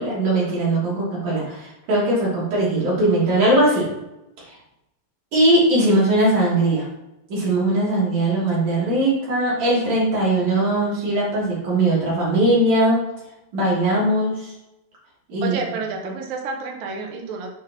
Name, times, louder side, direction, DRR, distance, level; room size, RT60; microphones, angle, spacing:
voice 1, 0.0-3.9 5.3-6.9 7.3-13.0 13.5-14.5 15.3-15.6 16.0-16.1, right 1 dB, 50° right, -6 dB, 4.1 m, -20 dB
voice 2, 15.4-17.5, right 4 dB, 80° right, 2 dB, 2.8 m, -29 dB
9.2 x 6.2 x 3.0 m, 0.92 s
omnidirectional pair, 4.0 m